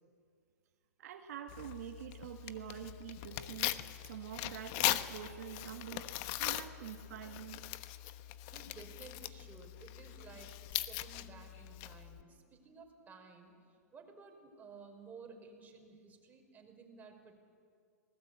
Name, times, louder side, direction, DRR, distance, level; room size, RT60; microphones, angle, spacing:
voice 1, 1.0-6.1 6.4-7.6, right 10 dB, 65° right, 4 dB, 1.6 m, -46 dB
Tearing, 1.5-12.2, left 15 dB, 45° left, 1.2 m, -40 dB
voice 2, 8.5-13.6 13.9-17.4, right 4 dB, 20° right, 2 dB, 5.4 m, -55 dB
26.0 x 19.5 x 8.5 m, 2.2 s
hypercardioid pair, 115°, 9 cm